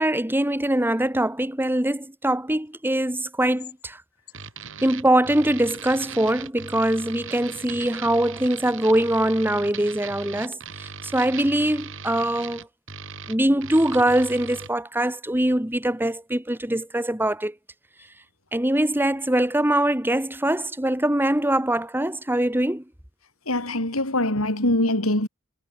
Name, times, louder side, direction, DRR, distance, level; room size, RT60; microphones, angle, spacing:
voice 1, 0.0-4.0 4.8-12.7 13.3-17.5 18.5-22.8, right 1 dB, 10° right, 2.0 m, -23 dB
sound 1, 4.3-14.7, right 6 dB, 65° right, 4.4 m, -39 dB
voice 2, 23.5-25.3, left 1 dB, 90° left, 6.3 m, -23 dB
head